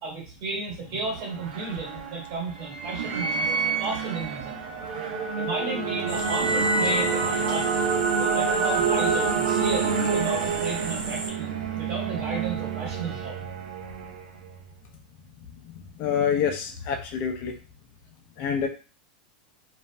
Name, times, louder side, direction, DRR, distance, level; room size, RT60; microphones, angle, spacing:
voice 1, 0.0-3.5 3.8-4.7 5.4-7.7 8.1-13.4, right 4 dB, 45° right, -4 dB, 1.3 m, -33 dB
sound 1, 0.8-14.6, right 5 dB, 80° right, 0.6 m, -27 dB
sound 2, 6.1-11.3, right 2 dB, 60° right, 1.0 m, -36 dB
voice 2, 16.0-17.5 18.4-18.7, left 7 dB, 45° left, 3 dB, 0.6 m, -26 dB
2.6 x 2.1 x 3.2 m, 0.37 s
supercardioid pair, 130°, 5 cm